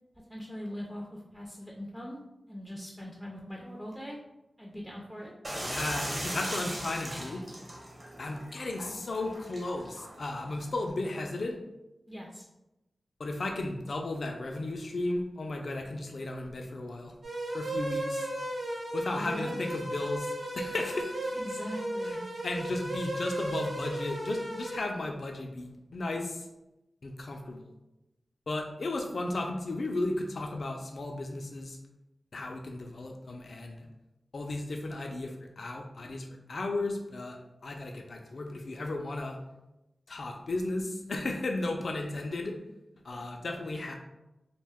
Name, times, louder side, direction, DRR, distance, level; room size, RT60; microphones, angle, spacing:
voice 1, 0.3-2.2 2.5-4.2 4.6-5.3 12.1-12.4 19.1-19.6 21.3-22.2 41.9-42.0 43.1-43.2, equal, 5° right, -2 dB, 0.4 m, -41 dB
sound 1, 5.4-10.9, right 1 dB, 40° right, 0.9 m, -39 dB
voice 2, 5.6-7.4 8.2-11.6 13.2-17.1 17.5-18.3 18.9-21.3 22.1-22.2 22.4-26.5 27.0-27.7 28.5-31.8 32.3-33.9 34.3-39.4 40.1-42.6 43.0-44.0, left 2 dB, 65° left, 2 dB, 0.3 m, -35 dB
sound 2, 17.2-24.8, right 1 dB, 70° right, 0.6 m, -35 dB
2.5 x 2.2 x 3.4 m, 0.94 s
wide cardioid pair, 80°, 0 cm